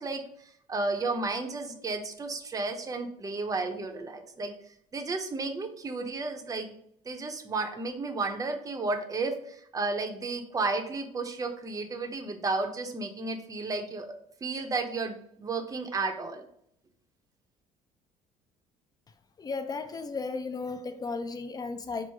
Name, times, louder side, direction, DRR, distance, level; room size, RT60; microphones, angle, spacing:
voice 1, 0.0-4.5 4.9-6.8 7.0-14.1 14.4-16.4, right 3 dB, 25° right, 0.7 m, -33 dB
voice 2, 19.4-22.1, left 4 dB, 30° left, 0.5 m, -35 dB
4.5 x 2.0 x 4.5 m
supercardioid pair, 85°, 14 cm